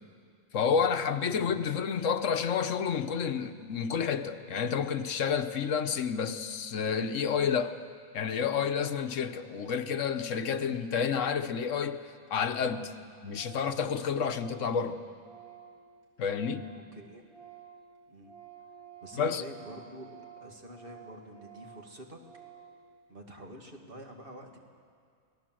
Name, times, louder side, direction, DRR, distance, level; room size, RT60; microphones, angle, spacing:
voice 1, 0.5-7.8 8.1-12.0 12.3-12.9 13.2-15.0 16.2-16.7 19.1-19.4, left 6 dB, 80° left, 1.3 m, -30 dB
Organ, 12.0-12.1 12.3-12.4 12.6-13.0 13.3-16.9 17.2-22.8, right 9 dB, 80° right, 4.7 m, -52 dB
voice 2, 16.9-17.2 18.1-18.3 19.0-20.1 20.4-22.2 23.1-24.6, right 1 dB, 45° right, 2.4 m, -47 dB
28.0 x 19.0 x 7.7 m
omnidirectional pair, 1.3 m